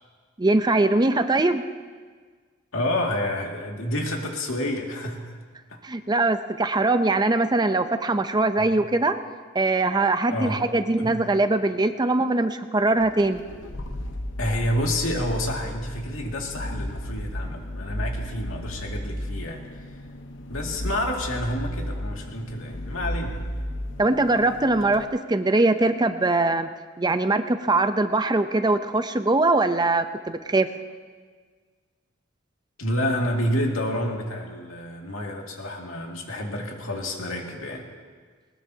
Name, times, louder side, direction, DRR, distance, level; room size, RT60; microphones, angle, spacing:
voice 1, 0.4-1.6 5.8-9.2 9.5-13.4 24.0-26.7 27.0-30.7, right 2 dB, 20° right, 9 dB, 0.5 m, -22 dB
voice 2, 2.7-5.4 5.7-5.8 8.6-8.9 10.3-10.6 11.0-11.2 14.4-20.0 20.5-23.4 32.8-37.9, left 1 dB, 90° left, 0 dB, 2.2 m, -29 dB
sound 1, 12.9-25.1, equal, 65° left, 1.0 m, -34 dB
20.5 x 20.0 x 2.8 m, 1.5 s
head